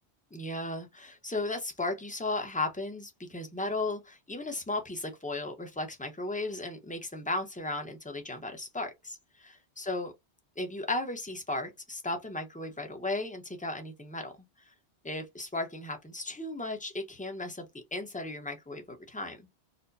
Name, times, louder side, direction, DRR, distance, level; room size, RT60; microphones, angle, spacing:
voice 1, 0.3-10.1 10.6-14.3 14.7-14.8 15.0-19.4, left 2 dB, 10° left, 0.7 m, -35 dB
4.2 x 2.1 x 2.6 m
omnidirectional pair, 1.2 m